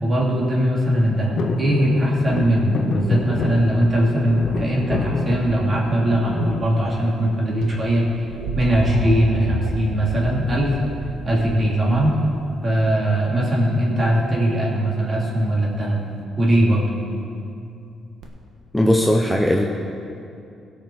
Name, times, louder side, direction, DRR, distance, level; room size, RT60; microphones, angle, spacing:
voice 1, 0.0-8.1 8.5-10.7 11.2-12.1 12.6-16.0 16.4-16.9, right 1 dB, 35° right, -4 dB, 3.1 m, -20 dB
sound 1, 1.4-7.5 8.0-8.6 9.9-10.3 10.5-10.6 10.9-11.2 12.0-13.0 13.4-13.5, left 5 dB, 55° left, 0.7 m, -28 dB
sound 2, 7.6-13.5 15.1-15.7 18.2-18.3, right 1 dB, 75° right, 1.5 m, -31 dB
voice 2, 18.7-19.7, left 1 dB, 5° left, 0 dB, 0.8 m, -18 dB
17.0 x 6.1 x 4.9 m, 2.6 s
cardioid pair, 90°, 0 cm